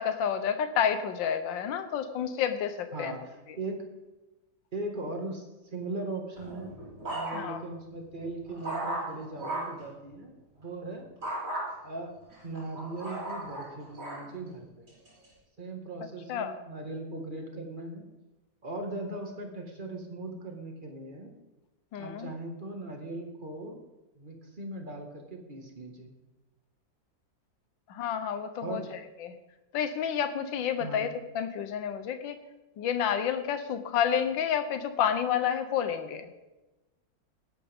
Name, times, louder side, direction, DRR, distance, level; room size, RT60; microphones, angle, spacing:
voice 1, 0.0-3.1 3.5-3.6 7.3-7.6 16.3-16.6 21.9-22.3 27.9-29.3 29.7-32.4 32.8-36.3, left 8 dB, 80° left, 9 dB, 1.7 m, -30 dB
voice 2, 2.9-3.8 4.7-5.5 5.7-6.8 7.1-10.3 10.6-11.1 11.8-12.1 12.4-14.9 15.6-18.0 18.6-21.3 22.0-23.8 24.2-26.1 28.6-28.9 30.8-31.0, right 2 dB, 25° right, 2 dB, 2.0 m, -39 dB
sound 1, 6.4-7.7 8.2-9.8 11.2-11.7 12.3-14.2 14.9-15.3, right 1 dB, 45° right, 4.7 m, -36 dB
19.5 x 11.5 x 3.6 m, 1.1 s
omnidirectional pair, 2.0 m